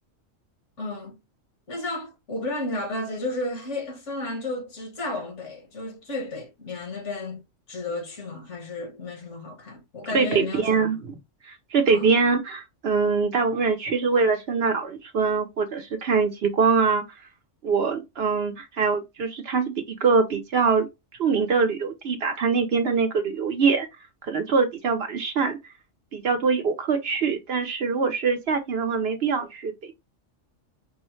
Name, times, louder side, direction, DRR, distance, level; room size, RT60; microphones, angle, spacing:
voice 1, 0.8-1.2 1.7-7.4 7.7-10.8 11.9-12.1, left 2 dB, 65° left, 1.7 m, -33 dB
voice 2, 10.1-11.1 11.5-17.0 17.6-20.9 21.2-23.9 24.2-25.6 26.1-29.9, right 5 dB, 60° right, 0.9 m, -23 dB
5.4 x 2.1 x 3.0 m
omnidirectional pair, 1.3 m